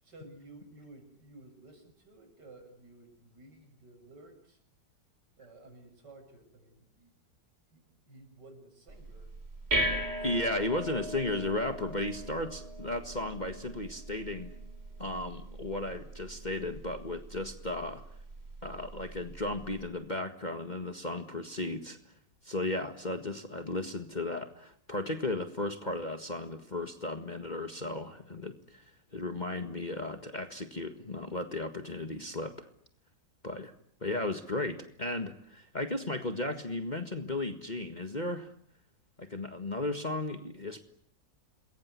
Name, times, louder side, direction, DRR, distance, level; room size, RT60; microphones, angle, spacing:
voice 1, 0.0-4.6 5.4-7.1 7.7-9.3 10.0-10.7, right 2 dB, 65° right, 5 dB, 7.9 m, -54 dB
sound 1, 8.9-19.9, right 1 dB, 35° right, 4.3 m, -39 dB
voice 2, 10.2-14.5 15.0-18.0 18.6-22.0 22.4-28.8 29.1-32.7 33.4-33.7 34.0-38.5 39.2-40.8, left 2 dB, 25° left, 7 dB, 1.7 m, -35 dB
27.5 x 22.0 x 9.7 m, 0.64 s
omnidirectional pair, 1.9 m